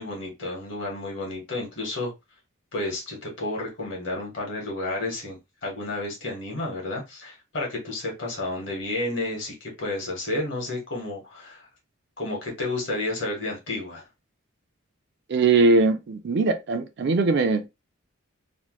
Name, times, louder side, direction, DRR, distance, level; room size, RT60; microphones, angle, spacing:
voice 1, 0.0-2.1 2.7-11.7 12.2-14.0, left 2 dB, 55° left, 1.3 m, -31 dB
voice 2, 15.3-17.7, right 3 dB, 50° right, 0.4 m, -21 dB
3.0 x 2.2 x 3.0 m
head